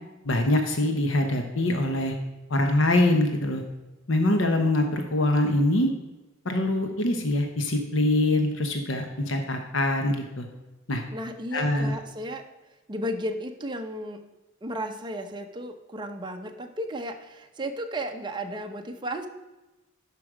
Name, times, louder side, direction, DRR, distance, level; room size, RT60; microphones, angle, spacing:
voice 1, 0.2-2.1 2.5-3.6 4.1-5.9 6.4-10.5 10.9-11.0 11.5-11.9, left 1 dB, 65° left, 5 dB, 0.9 m, -24 dB
voice 2, 11.1-12.5 12.9-14.3 14.6-19.3, equal, 20° right, 5 dB, 0.7 m, -34 dB
11.0 x 5.2 x 4.9 m, 1.0 s
head